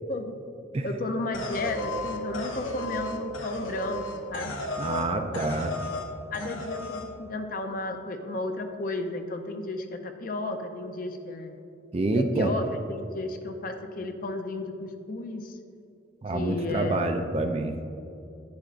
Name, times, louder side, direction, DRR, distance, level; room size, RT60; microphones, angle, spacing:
voice 1, 0.8-4.5 5.3-5.4 6.3-11.6 12.1-15.6 16.3-17.2, left 2 dB, 45° left, 6 dB, 0.5 m, -33 dB
sound 1, 1.3-5.1 5.3-6.1 6.3-7.1, left 2 dB, 85° left, 0.8 m, -34 dB
voice 2, 4.8-5.7 11.9-12.5 16.2-17.9, right 2 dB, 30° right, 6 dB, 0.4 m, -27 dB
10.5 x 8.9 x 2.5 m, 2.7 s
head